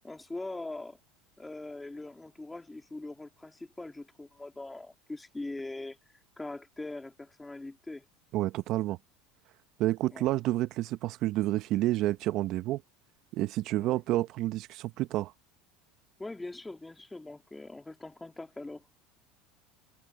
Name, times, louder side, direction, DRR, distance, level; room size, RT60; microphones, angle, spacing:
voice 1, 0.0-1.0 1.4-6.0 6.4-8.1 10.1-10.2 13.8-14.0 16.2-18.8, left 2 dB, 10° left, 2.4 m, -42 dB
voice 2, 8.3-9.0 9.8-12.8 13.3-15.3, right 16 dB, 55° right, 1.0 m, -29 dB
hypercardioid pair, 95°, 0 cm